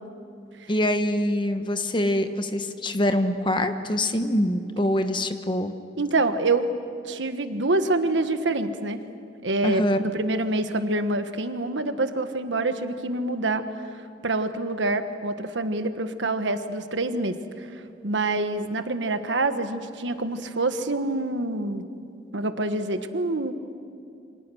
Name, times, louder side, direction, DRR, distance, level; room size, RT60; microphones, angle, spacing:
voice 1, 0.7-5.7 9.6-10.0, left 1 dB, 25° left, 8 dB, 1.2 m, -24 dB
voice 2, 6.0-6.7 7.0-9.0 9.4-13.6 14.2-21.8 22.3-23.5, right 2 dB, 85° right, 9 dB, 1.4 m, -26 dB
28.0 x 25.5 x 6.4 m, 2.5 s
head